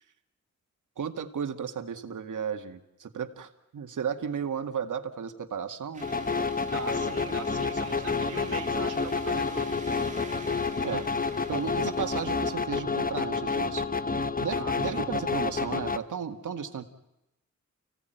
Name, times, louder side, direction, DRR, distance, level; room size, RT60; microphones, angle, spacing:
voice 1, 1.0-6.0 10.8-11.1 11.5-13.9 14.4-16.8, right 7 dB, 90° right, 6 dB, 2.0 m, -34 dB
sound 1, 5.9-12.6, right 3 dB, 25° right, 2.7 m, -48 dB
sound 2, 6.0-16.0, left 4 dB, 30° left, 1.0 m, -29 dB
voice 2, 6.7-9.8 14.5-15.0, right 5 dB, 55° right, 0 dB, 3.8 m, -40 dB
30.0 x 17.0 x 9.3 m, 0.91 s
wide cardioid pair, 100°, 30 cm